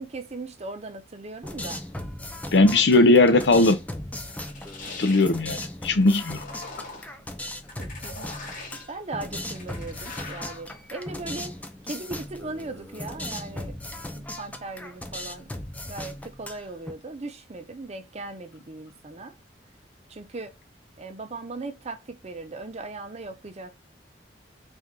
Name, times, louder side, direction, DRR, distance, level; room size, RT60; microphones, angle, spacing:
voice 1, 0.0-1.8 4.9-5.0 7.8-8.4 8.9-11.5 11.8-13.8 14.2-15.5 15.9-19.3 20.1-20.5 21.0-23.7, right 3 dB, 40° right, 0.7 m, -38 dB
sound 1, 1.4-16.9, left 1 dB, 10° left, 0.5 m, -37 dB
voice 2, 2.5-3.8 5.0-6.4, left 2 dB, 70° left, 0.7 m, -18 dB
sound 2, 4.3-5.4 6.0-7.1 7.7-8.9 9.3-10.6, left 3 dB, 50° left, 1.2 m, -41 dB
4.4 x 2.5 x 3.7 m
head